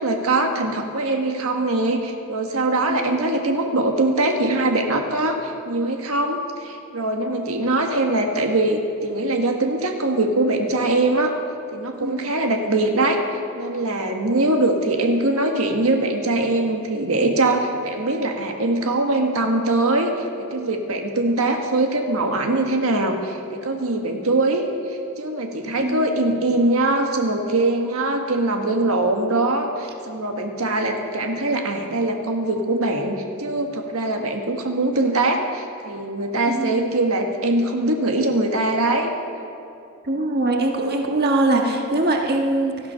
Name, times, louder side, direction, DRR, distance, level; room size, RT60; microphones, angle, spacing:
voice 1, 0.0-11.3 11.7-13.2 13.5-39.1, right 2 dB, 80° right, 3 dB, 1.5 m, -22 dB
voice 2, 2.9-3.3 7.5-7.8 12.0-12.2 25.8-26.2 36.5-36.8 40.0-42.8, right 2 dB, 50° right, 2 dB, 1.6 m, -23 dB
18.0 x 13.0 x 5.7 m, 2.7 s
head